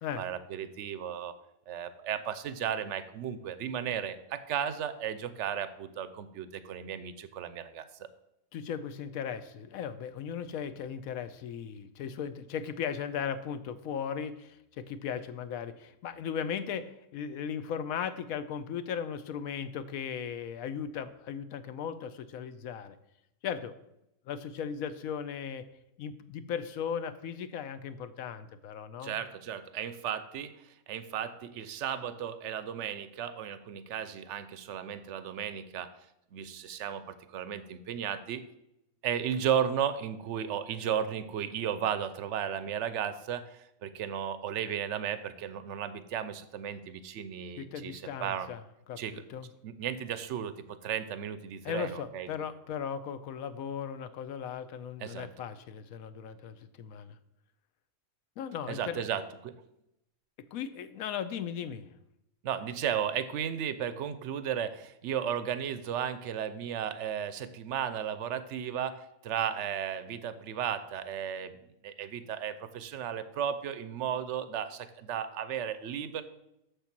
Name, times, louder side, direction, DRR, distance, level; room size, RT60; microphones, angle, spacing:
voice 1, 0.2-1.3 1.7-8.1 29.0-35.9 36.3-38.4 39.0-48.5 49.0-49.2 49.6-52.3 55.0-55.3 58.7-59.5 62.4-71.5 71.8-76.2, right 9 dB, 60° right, 12 dB, 0.8 m, -34 dB
voice 2, 8.5-23.0 23.4-23.7 24.3-25.6 26.0-29.2 47.6-48.6 48.9-49.5 51.6-57.2 58.4-59.1 60.5-61.8, left 7 dB, 70° left, 12 dB, 1.0 m, -37 dB
6.9 x 6.8 x 5.9 m, 0.84 s
omnidirectional pair, 1.6 m